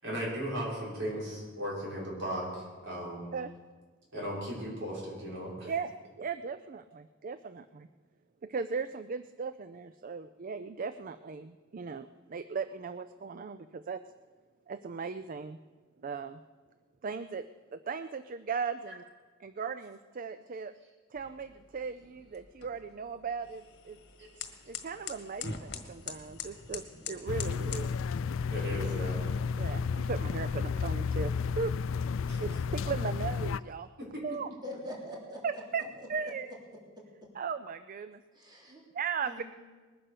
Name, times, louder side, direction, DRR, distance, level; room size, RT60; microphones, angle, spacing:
voice 1, 0.0-3.4 4.1-5.7 24.2-24.3 28.5-29.2 32.3-32.4 34.1-34.2, equal, 65° right, -5 dB, 6.4 m, -36 dB
voice 2, 5.6-7.9 8.4-14.0 14.7-15.6 16.0-16.4 17.0-17.5 17.7-19.0 19.4-20.7 21.1-24.0 24.7-27.9 29.6-31.8 32.4-33.9 34.2-34.5 35.4-36.5 37.3-38.2 38.9-39.4, right 5 dB, 45° right, 12 dB, 0.4 m, -37 dB
sound 1, 21.1-27.9, left 6 dB, 60° left, 1.6 m, -44 dB
sound 2, 27.3-33.6, left 5 dB, 75° left, 0.4 m, -32 dB
voice 3, 34.6-35.6 36.0-36.1 38.3-38.8 39.2-39.4, left 1 dB, 20° right, -3 dB, 3.2 m, -43 dB
20.5 x 10.0 x 6.8 m, 1.4 s
head